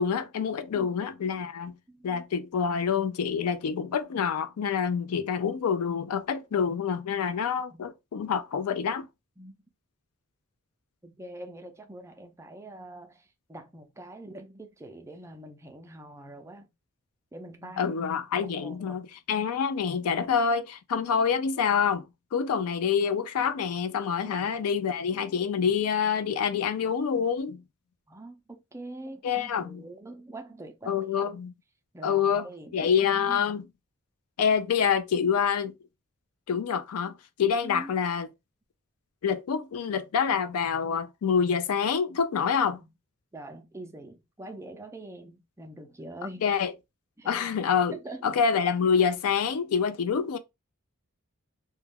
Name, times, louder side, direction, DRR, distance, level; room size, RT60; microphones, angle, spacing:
voice 1, 0.0-1.7 2.0-9.1 17.8-27.6 29.2-29.8 30.9-31.5 32.0-32.5 32.7-33.7 34.4-35.7 36.5-38.3 39.2-42.8 46.4-46.7 47.3-48.0 48.2-50.4, left 6 dB, 90° left, 0.4 m, -27 dB
voice 2, 1.9-2.2 7.7-7.8 9.4-9.5 11.0-16.7 17.3-18.0 18.4-19.1 24.2-24.6 28.1-30.9 31.9-33.5 37.6-37.9 42.7-42.9 43.3-46.4 47.2-47.4 47.9-48.2, right 1 dB, 15° right, 0.4 m, -44 dB
2.2 x 2.1 x 3.3 m
head